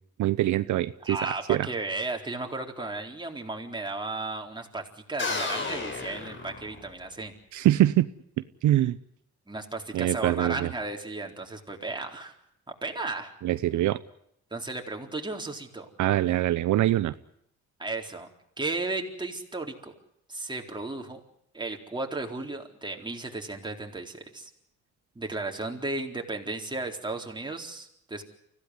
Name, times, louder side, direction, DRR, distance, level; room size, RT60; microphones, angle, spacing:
voice 1, 0.2-1.7 7.5-8.1 8.6-9.0 9.9-10.7 13.4-14.0 16.0-17.1, right 14 dB, 75° right, 13 dB, 0.8 m, -24 dB
voice 2, 1.0-7.3 9.5-12.3 12.8-13.3 14.5-15.9 17.8-18.3 18.6-19.9 20.3-21.2 21.5-24.5 25.2-28.2, right 2 dB, 15° right, 2 dB, 4.1 m, -34 dB
sound 1, 5.2-7.1, left 3 dB, 40° left, 4.6 m, -33 dB
25.0 x 16.5 x 9.7 m, 0.75 s
cardioid pair, 90°, 30 cm